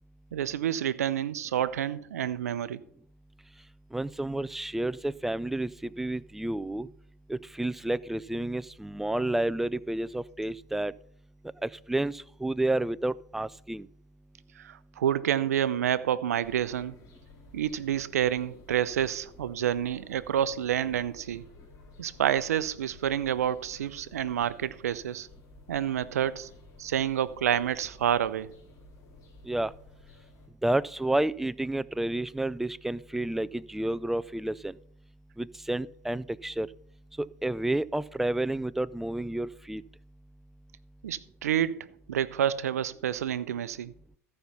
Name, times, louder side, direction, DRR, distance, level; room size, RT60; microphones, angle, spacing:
voice 1, 0.3-2.8 14.6-16.9 17.5-21.4 22.0-25.3 25.7-26.5 26.8-28.5 41.0-41.8 42.1-43.9, right 10 dB, 85° right, 0.5 m, -28 dB
voice 2, 3.9-5.7 6.0-6.9 7.3-10.9 11.6-13.9 29.5-29.7 30.6-34.8 35.4-36.7 37.2-39.8, right 1 dB, 5° right, 0.3 m, -30 dB
sound 1, 16.4-30.5, left 3 dB, 45° left, 3.1 m, -54 dB
14.0 x 5.4 x 5.8 m
hypercardioid pair, 95°, 8 cm